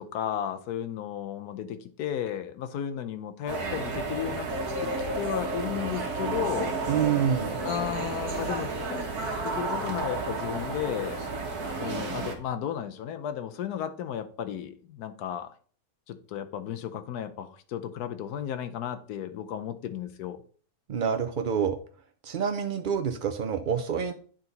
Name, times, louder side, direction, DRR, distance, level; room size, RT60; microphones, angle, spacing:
voice 1, 0.0-4.5 4.8-6.8 7.6-9.1 9.4-11.2 11.8-15.5 16.1-20.4, left 9 dB, 90° left, 8 dB, 1.2 m, -34 dB
sound 1, 3.5-12.4, right 3 dB, 90° right, 1.7 m, -32 dB
voice 2, 6.9-7.5 20.9-21.8 22.2-24.1, right 7 dB, 65° right, 7 dB, 0.5 m, -27 dB
9.8 x 3.9 x 4.0 m, 0.44 s
omnidirectional pair, 1.6 m